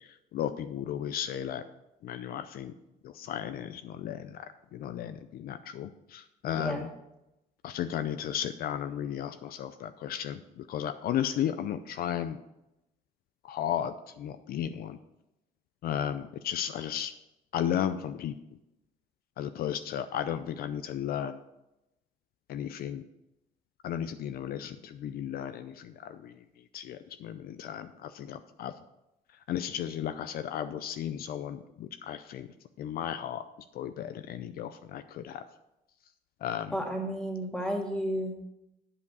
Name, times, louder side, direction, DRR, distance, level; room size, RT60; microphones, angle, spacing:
voice 1, 0.3-1.6 2.0-2.7 3.2-4.3 4.7-6.9 7.6-10.4 10.7-12.4 13.5-15.0 15.8-17.1 17.5-18.3 19.4-21.4 22.5-23.0 23.8-26.3 26.7-28.7 29.5-32.5 32.8-33.4 33.8-35.4 36.4-36.7, left 10 dB, 60° left, 10 dB, 0.5 m, -34 dB
voice 2, 6.5-6.9 36.7-38.4, equal, 5° left, 0 dB, 2.0 m, -32 dB
8.3 x 5.0 x 6.9 m, 0.90 s
cardioid pair, 110°, 17 cm